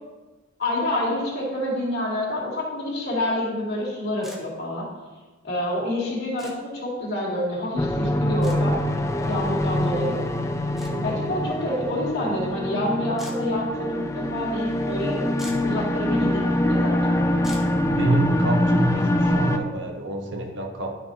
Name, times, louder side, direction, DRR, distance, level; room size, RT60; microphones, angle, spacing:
voice 1, 0.6-4.9 5.4-8.8 9.2-10.2 10.9-15.2 15.6-17.2, left 1 dB, 55° left, -5 dB, 2.7 m, -28 dB
sound 1, 4.2-4.4 6.4-6.5 8.4-8.6 10.8-10.9 13.2-13.4 15.0-15.1 15.3-15.7 17.4-17.7, equal, ahead, 1.0 m, -40 dB
sound 2, 7.8-19.6, left 1 dB, 15° left, 0.4 m, -24 dB
voice 2, 10.9-11.2 17.9-21.0, right 1 dB, 60° right, 2 dB, 1.1 m, -27 dB
12.5 x 5.3 x 2.8 m, 1.2 s
head